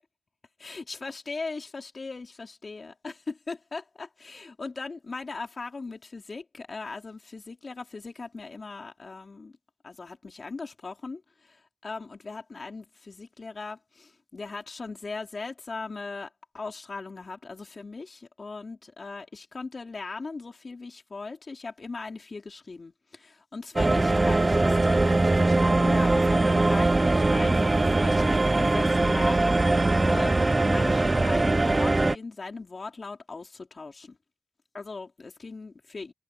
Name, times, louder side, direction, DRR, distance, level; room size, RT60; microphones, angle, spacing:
voice 1, 0.6-9.6 9.8-30.4 30.6-34.2 34.7-36.1, left 3 dB, 60° left, 4.2 m, -39 dB
sound 1, 23.8-32.2, right 2 dB, 35° right, 0.6 m, -22 dB
cardioid pair, 50°, 0 cm